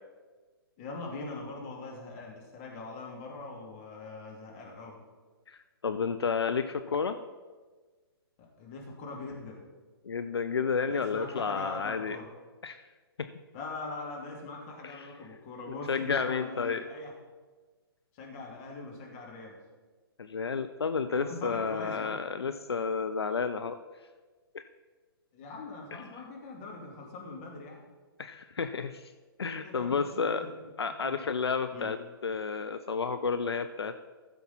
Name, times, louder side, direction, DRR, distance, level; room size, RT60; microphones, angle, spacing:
voice 1, 0.8-5.0 8.6-9.6 10.9-12.3 13.5-17.1 18.1-19.6 21.1-22.2 25.3-27.8 29.6-30.6 31.0-31.2 31.7-31.9, left 3 dB, 35° left, -1 dB, 2.6 m, -42 dB
voice 2, 5.5-7.2 10.0-12.2 12.6-12.8 13.2-13.3 14.8-15.1 15.7-16.8 20.2-23.8 24.5-24.6 25.9-26.0 28.2-29.1 29.4-30.4 30.8-34.1, left 5 dB, 80° left, 10 dB, 0.5 m, -31 dB
14.5 x 6.8 x 4.1 m, 1.4 s
hypercardioid pair, 135°, 13 cm